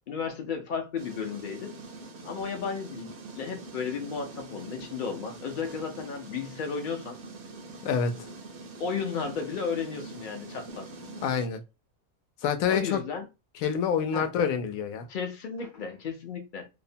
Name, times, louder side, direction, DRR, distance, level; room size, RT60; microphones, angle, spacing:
voice 1, 0.1-1.8 2.2-7.2 8.8-10.9 12.7-13.3 14.1-14.3 15.1-16.7, left 6 dB, 60° left, 0.5 m, -34 dB
sound 1, 1.0-11.5, right 2 dB, 65° right, 0.7 m, -44 dB
voice 2, 7.8-8.3 11.2-11.6 12.4-13.0 13.6-15.1, left 7 dB, 80° left, 1.0 m, -27 dB
2.7 x 2.1 x 2.6 m
omnidirectional pair, 1.5 m